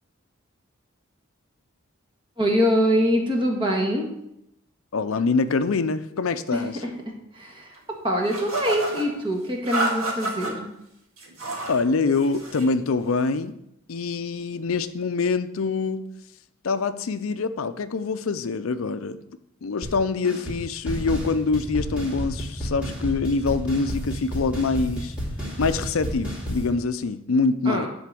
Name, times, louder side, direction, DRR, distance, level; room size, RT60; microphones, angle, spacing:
voice 1, 2.4-4.1 6.5-6.6 7.4-7.7 8.0-10.7 27.6-27.9, equal, 25° right, 1 dB, 1.6 m, -23 dB
voice 2, 4.9-6.7 11.7-13.5 13.9-16.1 16.6-19.2 19.6-25.1 25.6-27.9, left 4 dB, 70° left, 11 dB, 0.5 m, -25 dB
sound 1, 8.3-9.1 9.7-10.5 11.2-11.8 12.1-12.7, right 2 dB, 75° right, 2.2 m, -29 dB
sound 2, 19.8-20.0 20.2-20.6 20.9-26.7, equal, 5° right, 2.8 m, -31 dB
10.5 x 3.9 x 7.6 m, 0.82 s
head